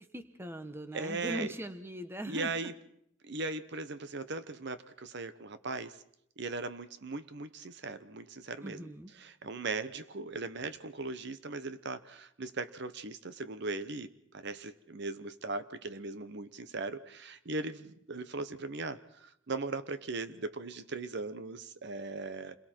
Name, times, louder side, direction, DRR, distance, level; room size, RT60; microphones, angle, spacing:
voice 1, 0.1-2.5 8.6-9.1, right 1 dB, 10° right, 9 dB, 1.1 m, -40 dB
voice 2, 0.9-1.5 2.3-2.7 3.2-6.0 6.4-8.9 9.2-22.6, right 3 dB, 55° right, 12 dB, 0.9 m, -39 dB
28.0 x 22.5 x 4.5 m, 0.73 s
head